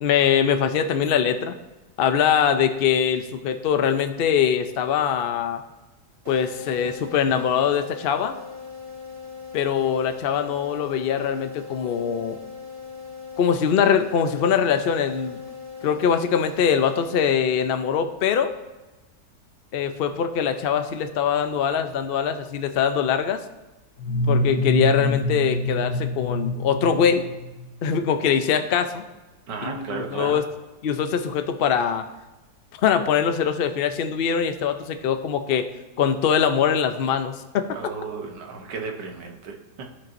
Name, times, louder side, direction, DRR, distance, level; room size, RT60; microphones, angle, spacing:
voice 1, 0.0-1.6 2.0-5.6 6.3-8.3 9.5-12.4 13.4-15.4 15.8-18.5 19.7-23.4 24.2-27.2 27.8-29.0 29.6-30.4 30.8-32.0 32.8-35.7 36.0-37.7, left 7 dB, 90° left, 8 dB, 0.5 m, -22 dB
sound 1, 6.2-18.0, left 5 dB, 20° right, 1.2 m, -40 dB
sound 2, 24.0-27.7, left 1 dB, 45° left, 0.8 m, -25 dB
voice 2, 29.5-30.4 37.7-40.0, right 5 dB, 90° right, 2 dB, 1.7 m, -34 dB
15.0 x 5.8 x 2.6 m, 1.1 s
omnidirectional pair, 1.8 m